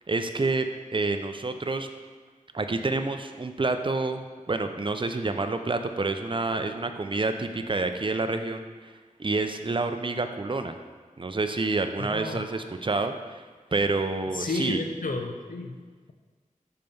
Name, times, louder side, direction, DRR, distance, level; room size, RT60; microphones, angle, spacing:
voice 1, 0.1-0.7 0.9-1.9 2.5-8.9 9.2-10.8 11.2-13.4 13.7-14.8, right 3 dB, 35° right, 7 dB, 0.5 m, -28 dB
voice 2, 12.0-12.4 14.3-15.8, left 2 dB, 70° left, 4 dB, 0.7 m, -31 dB
5.4 x 4.4 x 5.3 m, 1.4 s
wide cardioid pair, 55°, 14 cm